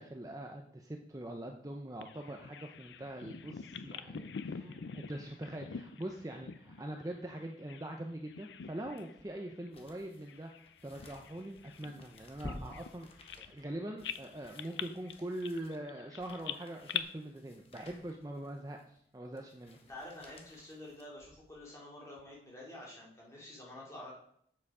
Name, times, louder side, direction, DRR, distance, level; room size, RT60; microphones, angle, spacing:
voice 1, 0.0-4.7 4.9-13.1 13.4-19.8, right 1 dB, 20° right, 3 dB, 0.5 m, -43 dB
Bird vocalization bird call bird song, 2.0-8.0 8.3-9.2 9.5-9.7 10.3-13.7 14.0-17.0, left 7 dB, 85° left, 0.5 m, -44 dB
sound 1, 9.0-21.6 22.1-22.2, left 1 dB, 35° left, 1.1 m, -53 dB
voice 2, 19.9-24.1, left 1 dB, 15° left, -4 dB, 2.6 m, -49 dB
7.5 x 7.0 x 4.8 m, 0.68 s
head